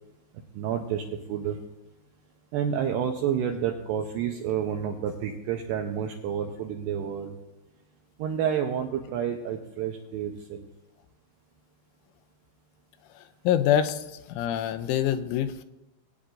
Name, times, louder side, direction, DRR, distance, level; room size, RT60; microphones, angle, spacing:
voice 1, 0.5-1.6 2.5-7.4 8.2-10.7, right 8 dB, 90° right, 3 dB, 2.4 m, -29 dB
voice 2, 13.1-15.6, left 10 dB, 85° left, 10 dB, 2.9 m, -26 dB
21.0 x 9.4 x 2.5 m, 0.98 s
omnidirectional pair, 5.6 m